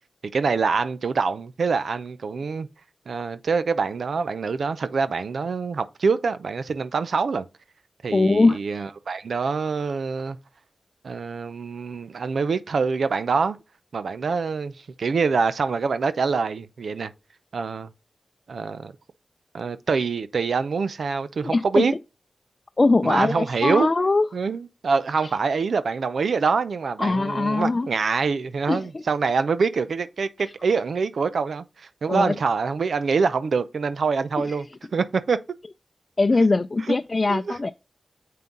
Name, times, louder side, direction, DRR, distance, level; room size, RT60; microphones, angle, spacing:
voice 1, 0.3-2.7 3.1-7.4 8.0-10.4 11.0-13.6 13.9-17.1 17.5-17.9 18.5-18.9 19.5-21.9 23.0-23.9 24.3-34.7 34.9-35.4 36.9-37.0 37.3-37.6, right 5 dB, 80° right, 0.6 m, -25 dB
voice 2, 8.1-8.6 21.4-21.8 22.8-24.3 25.2-25.3 27.0-27.9 28.7-29.0 32.1-32.3 34.4-34.5 36.2-37.7, left 3 dB, 45° left, 0.5 m, -21 dB
7.5 x 5.6 x 3.9 m
cardioid pair, 40°, 0 cm